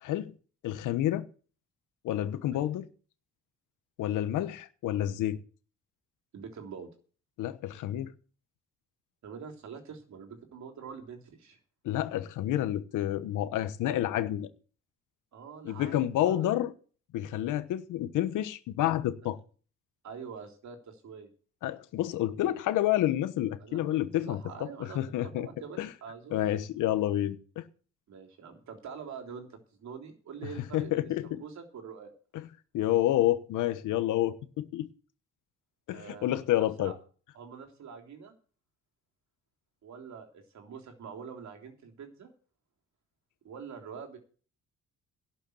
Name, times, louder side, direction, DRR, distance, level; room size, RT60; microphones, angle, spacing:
voice 1, 0.0-0.3 0.6-1.3 2.0-2.8 4.0-5.4 7.4-8.1 11.8-14.5 15.6-16.7 17.1-19.4 21.6-25.5 25.8-25.9 26.3-27.6 30.7-31.4 32.3-32.5 32.7-34.9 35.9-36.9, left 13 dB, 85° left, 1.1 m, -29 dB
voice 2, 6.3-6.9 9.2-11.6 15.3-16.4 20.0-21.3 23.6-26.4 28.1-29.5 29.8-32.1 35.9-36.9 37.3-38.3 39.8-42.3 43.4-44.2, right 6 dB, 65° right, 3.4 m, -45 dB
12.0 x 6.7 x 8.0 m
cardioid pair, 90°, 30 cm